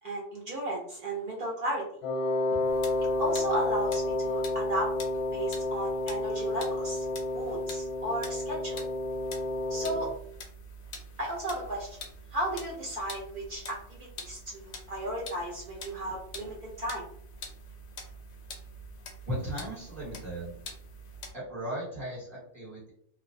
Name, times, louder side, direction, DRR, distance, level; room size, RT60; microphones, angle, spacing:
voice 1, 0.0-1.8 3.2-4.9 5.3-7.1 7.3-8.8 9.7-10.1 11.2-12.0 12.3-13.8 14.3-17.0, right 1 dB, 70° right, -3 dB, 0.5 m, -34 dB
Wind instrument woodwind instrument, 2.0-10.1, left 2 dB, 85° left, 1.1 m, -30 dB
sound 1, 2.6-21.3, left 1 dB, 65° left, 0.7 m, -46 dB
voice 2, 19.3-20.5 21.3-22.9, right 1 dB, 30° right, -7 dB, 1.0 m, -36 dB
2.5 x 2.0 x 2.5 m, 0.64 s
omnidirectional pair, 1.6 m